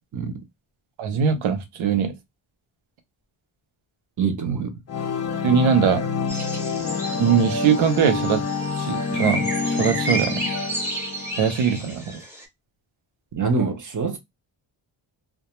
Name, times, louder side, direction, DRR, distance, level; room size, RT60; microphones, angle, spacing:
voice 1, 1.0-2.2 5.4-6.1 7.2-8.4 8.8-10.5 11.4-12.2, right 7 dB, 80° right, 0.8 m, -21 dB
voice 2, 4.2-4.8 13.3-14.2, right 4 dB, 40° right, 0.6 m, -25 dB
sound 1, 4.9-11.8, left 5 dB, 35° left, 0.4 m, -27 dB
sound 2, 6.3-12.5, right 1 dB, 5° right, 0.7 m, -32 dB
2.2 x 2.2 x 2.9 m
wide cardioid pair, 150°, 47 cm